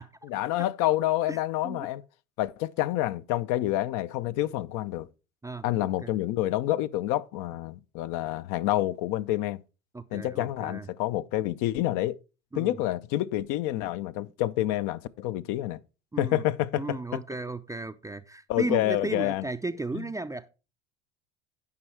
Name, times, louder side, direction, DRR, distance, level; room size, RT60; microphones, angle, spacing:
voice 1, 0.2-2.0 2.4-5.1 5.6-9.6 10.1-12.2 12.5-15.8 16.2-17.0 18.5-19.4, left 14 dB, 55° left, 0.6 m, -28 dB
voice 2, 5.4-6.1 9.9-10.9 12.5-12.8 16.1-16.4 16.7-20.5, right 2 dB, 10° right, 0.5 m, -35 dB
9.6 x 5.4 x 4.6 m
hypercardioid pair, 75°, 37 cm